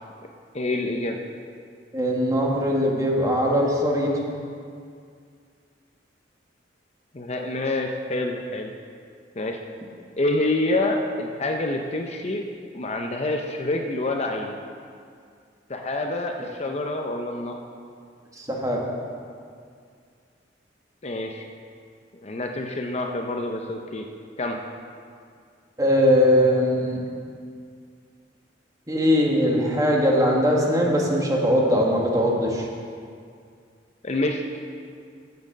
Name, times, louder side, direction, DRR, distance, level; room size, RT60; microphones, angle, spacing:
voice 1, 0.5-1.2 7.1-8.7 9.3-9.6 10.2-12.4 12.7-14.6 15.7-17.6 21.0-21.5 22.2-24.0 24.4-24.6 34.0-34.4, left 2 dB, 35° left, 3 dB, 0.6 m, -27 dB
voice 2, 1.9-4.1 18.4-18.8 25.8-27.0 28.9-32.7, equal, 20° right, -2 dB, 1.5 m, -21 dB
9.4 x 7.4 x 6.6 m, 2.2 s
head